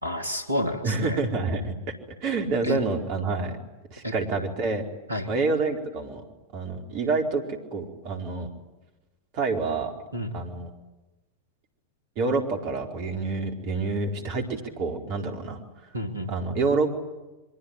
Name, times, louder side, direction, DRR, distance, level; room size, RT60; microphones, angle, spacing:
voice 1, 0.0-1.2 2.6-2.8 4.0-4.1 5.1-5.3 10.1-10.4 15.9-16.3, equal, 85° right, 6 dB, 3.1 m, -30 dB
voice 2, 0.8-1.7 2.2-3.6 3.9-4.8 5.3-6.2 6.5-8.5 9.3-9.9 10.3-10.7 12.2-15.6 16.3-16.9, right 3 dB, 45° right, 4 dB, 4.4 m, -27 dB
27.0 x 23.5 x 9.1 m, 1.1 s
figure-of-eight pair, 90°, 0 cm